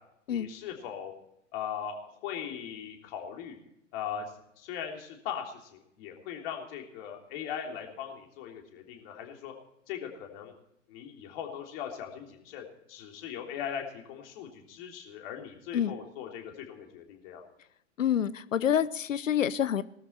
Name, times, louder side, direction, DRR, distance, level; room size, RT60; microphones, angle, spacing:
voice 1, 0.3-1.1 1.5-3.6 3.9-4.2 4.6-9.5 9.9-10.5 10.9-17.5, left 8 dB, 50° left, 2 dB, 3.4 m, -39 dB
voice 2, 18.0-19.8, left 9 dB, 75° left, 18 dB, 0.8 m, -27 dB
19.0 x 13.5 x 4.3 m, 0.77 s
figure-of-eight pair, 100°, 38 cm